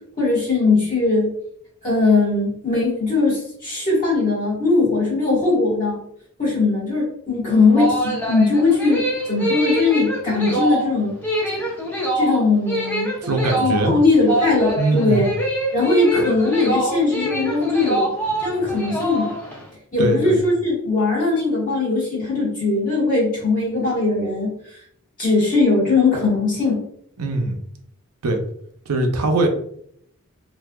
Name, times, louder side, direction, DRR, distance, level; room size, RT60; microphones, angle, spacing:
voice 1, 0.2-1.3 1.8-6.0 6.4-11.1 12.1-13.1 13.6-15.3 15.7-18.1 18.4-19.3 19.9-24.5 25.2-26.8, left 3 dB, 40° left, -6 dB, 1.5 m, -19 dB
sound 1, 7.5-19.6, right 1 dB, 10° left, 0.6 m, -24 dB
voice 2, 13.2-13.9 14.8-15.3 20.0-20.4 27.2-27.6 28.2-28.4 28.9-29.5, right 2 dB, 90° right, 3 dB, 0.6 m, -21 dB
3.3 x 2.6 x 2.2 m, 0.68 s
head